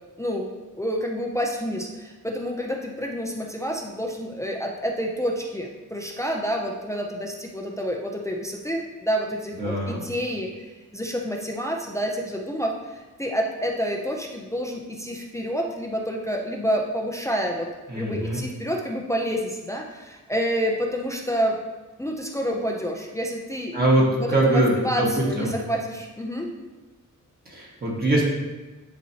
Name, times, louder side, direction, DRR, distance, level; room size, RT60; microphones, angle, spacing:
voice 1, 0.7-17.7 17.9-21.6 22.0-23.8 24.2-26.5, equal, 10° left, 0 dB, 0.5 m, -28 dB
voice 2, 9.6-10.0 17.9-18.4 23.7-25.1 25.4-25.5 27.5-28.2, right 1 dB, 30° right, -4 dB, 1.5 m, -22 dB
10.5 x 4.2 x 2.8 m, 1.2 s
wide cardioid pair, 175°, 32 cm